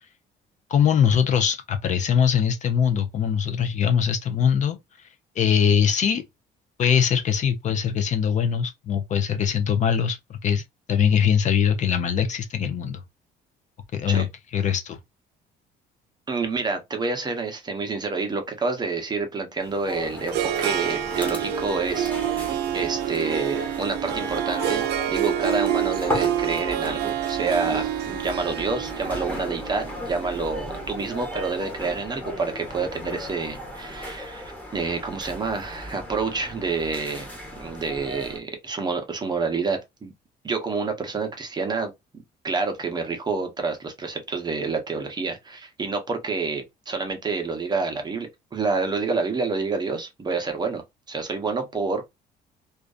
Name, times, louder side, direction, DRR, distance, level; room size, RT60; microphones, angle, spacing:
voice 1, 0.7-4.8 5.4-6.2 6.8-10.6 10.9-13.0 13.9-14.3 14.5-15.0, left 8 dB, 45° left, 0.5 m, -22 dB
voice 2, 16.3-22.4 22.7-37.3 37.6-40.1 40.4-41.9 42.4-50.8 51.1-52.1, right 4 dB, 25° right, 0.7 m, -28 dB
Harp, 19.6-31.8, right 11 dB, 80° right, 0.4 m, -28 dB
sound 1, 19.9-38.4, equal, 10° left, 1.0 m, -36 dB
2.5 x 2.3 x 2.3 m
cardioid pair, 110°, 17 cm